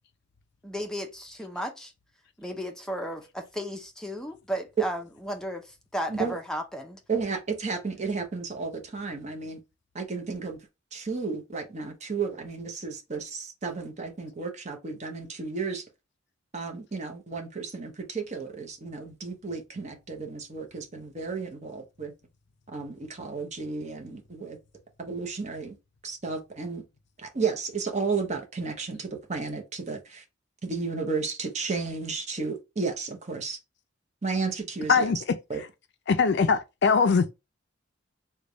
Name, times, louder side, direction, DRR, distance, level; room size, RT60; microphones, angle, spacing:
voice 1, 0.6-1.9 2.4-7.0, equal, 5° left, 0.5 m, -34 dB
voice 2, 7.1-9.6 9.9-10.6 10.9-15.8 16.5-22.1 22.7-24.6 25.1-25.8 26.0-26.8 27.2-30.2 30.6-33.6 34.2-35.1 35.5-35.6, right 4 dB, 35° right, 0.8 m, -33 dB
voice 3, 34.9-35.4 36.1-37.3, left 5 dB, 55° left, 0.4 m, -22 dB
3.3 x 2.2 x 3.9 m
head